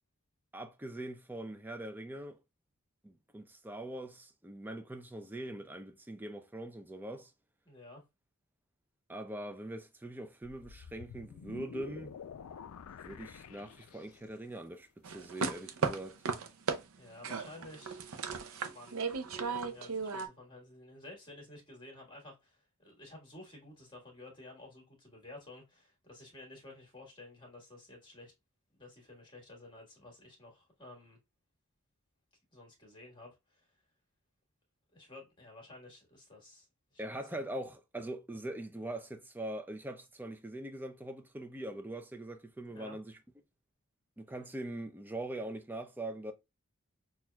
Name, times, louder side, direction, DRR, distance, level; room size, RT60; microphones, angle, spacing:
voice 1, 0.5-2.4 3.0-7.3 9.1-12.1 13.0-16.2 37.0-43.1 44.2-46.3, right 1 dB, 10° right, 0.4 m, -42 dB
voice 2, 7.6-8.0 17.0-18.0 18.5-28.3 28.8-31.2 32.5-33.8 34.9-37.4 42.7-43.0, left 2 dB, 20° left, 1.4 m, -53 dB
sound 1, 10.4-14.4, left 7 dB, 75° left, 0.4 m, -49 dB
sound 2, 15.0-16.8 17.2-20.3, right 5 dB, 70° right, 0.5 m, -35 dB
5.9 x 2.3 x 2.2 m
head